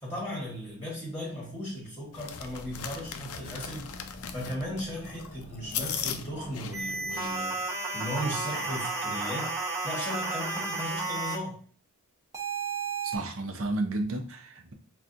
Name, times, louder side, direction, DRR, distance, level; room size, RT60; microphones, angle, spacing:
voice 1, 0.0-3.9 4.3-7.6 7.9-9.5 9.8-11.6, equal, 10° left, 1.2 m, -36 dB
sound 1, 2.1-7.4, left 8 dB, 80° left, 0.5 m, -38 dB
sound 2, 2.4-7.7, equal, 35° left, 0.8 m, -47 dB
sound 3, 6.7-11.4 12.3-13.2, right 3 dB, 15° right, 0.7 m, -32 dB
voice 2, 13.0-14.7, right 2 dB, 60° right, 0.6 m, -32 dB
5.7 x 2.3 x 2.5 m
head